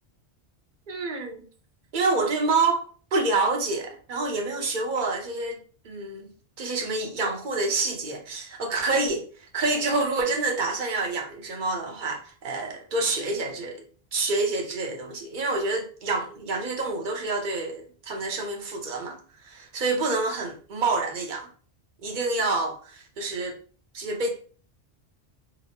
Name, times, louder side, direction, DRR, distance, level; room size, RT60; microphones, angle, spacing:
voice 1, 0.9-1.5 1.9-6.2 6.6-9.2 9.5-13.8 14.1-19.2 19.4-21.5 22.0-23.5 23.9-24.3, right 3 dB, 50° right, 0.9 m, -27 dB
5.1 x 2.1 x 2.8 m
omnidirectional pair, 1.1 m